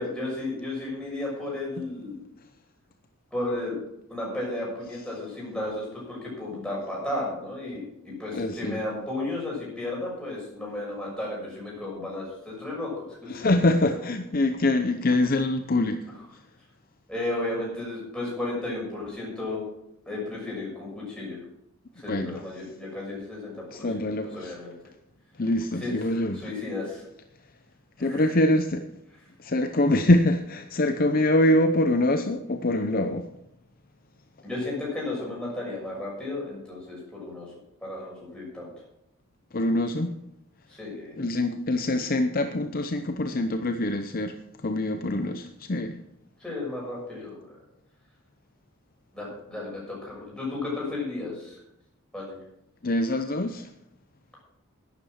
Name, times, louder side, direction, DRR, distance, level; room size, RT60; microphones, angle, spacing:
voice 1, 0.0-2.2 3.3-3.8 4.1-13.3 13.6-13.8 17.1-19.6 20.0-21.4 22.0-23.5 23.8-24.0 24.3-24.7 25.8-25.9 26.3-27.0 28.0-28.2 34.4-37.5 37.8-38.7 40.7-41.2 46.4-47.6 49.1-51.6 52.1-52.4, left 2 dB, 5° left, -5 dB, 6.6 m, -33 dB
voice 2, 8.3-8.8 13.3-16.1 22.0-22.4 23.7-24.6 25.4-26.5 28.0-28.9 29.4-33.3 39.5-40.2 41.2-44.3 44.6-46.0 52.8-53.7, left 1 dB, 40° left, 7 dB, 0.7 m, -24 dB
11.0 x 10.0 x 6.4 m, 0.81 s
head